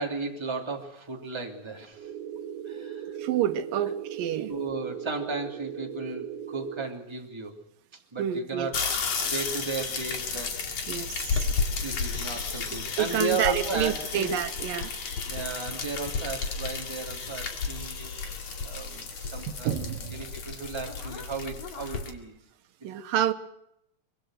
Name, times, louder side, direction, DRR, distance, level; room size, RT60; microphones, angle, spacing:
voice 1, 0.0-2.1 2.6-3.2 4.5-7.6 8.1-8.8 9.2-11.0 11.7-14.4 15.3-18.1 18.6-22.4 22.8-22.9, right 3 dB, 10° right, 1 dB, 2.5 m, -35 dB
sound 1, 2.0-6.9, right 8 dB, 65° right, 3.3 m, -38 dB
voice 2, 3.2-4.5 8.2-8.7 10.9-11.4 13.0-14.9 19.6-20.2 22.8-23.3, right 10 dB, 85° right, 9 dB, 2.8 m, -28 dB
sound 2, 8.7-22.1, left 5 dB, 50° left, 3.3 m, -32 dB
24.5 x 22.0 x 6.4 m, 0.78 s
omnidirectional pair, 3.9 m